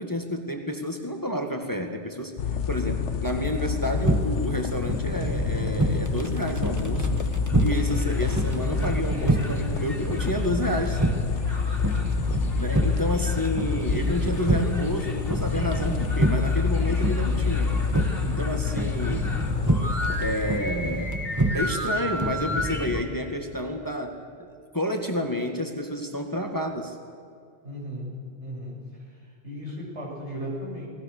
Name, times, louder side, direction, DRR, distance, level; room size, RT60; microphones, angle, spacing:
voice 1, 0.0-2.3 2.7-7.2 7.6-11.0 12.6-17.7 18.2-19.4 20.2-21.2 21.5-27.0, left 1 dB, 15° left, 4 dB, 1.9 m, -30 dB
sound 1, 2.4-20.6, left 6 dB, 85° left, 1.2 m, -28 dB
sound 2, 4.0-23.0, right 2 dB, 15° right, 1.6 m, -28 dB
sound 3, 7.5-23.0, left 1 dB, 55° left, 3.1 m, -37 dB
voice 2, 7.6-8.0 11.7-13.0 18.2-18.5 27.6-30.9, equal, 75° right, -4 dB, 7.8 m, -37 dB
29.5 x 20.5 x 6.8 m, 2.3 s
omnidirectional pair, 1.2 m